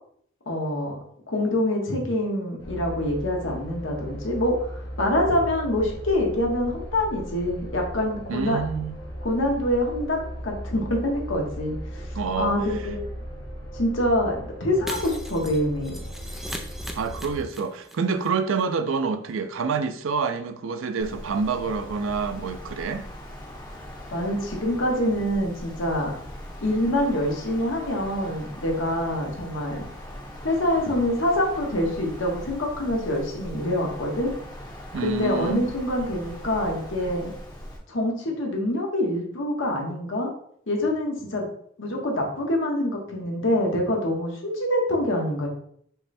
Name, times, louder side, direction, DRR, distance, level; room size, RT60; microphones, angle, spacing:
voice 1, 0.5-1.0 1.3-4.6 5.0-8.6 9.2-11.8 12.4-13.1 13.7-16.0 24.1-26.1 26.6-29.8 30.4-34.3 35.0-37.3 37.9-40.3 40.7-41.5 41.8-45.5, left 1 dB, 80° left, 1.2 m, -25 dB
sound 1, 2.6-17.4, equal, 60° left, 1.4 m, -37 dB
voice 2, 8.3-9.0 12.1-12.5 17.0-23.0 34.9-35.7, right 5 dB, 90° right, 0.5 m, -27 dB
Shatter, 14.9-17.9 18.2-18.3 18.6-18.7, equal, ahead, 0.4 m, -38 dB
Wind, 21.0-37.8, equal, 20° left, 0.9 m, -40 dB
5.6 x 2.2 x 4.2 m
head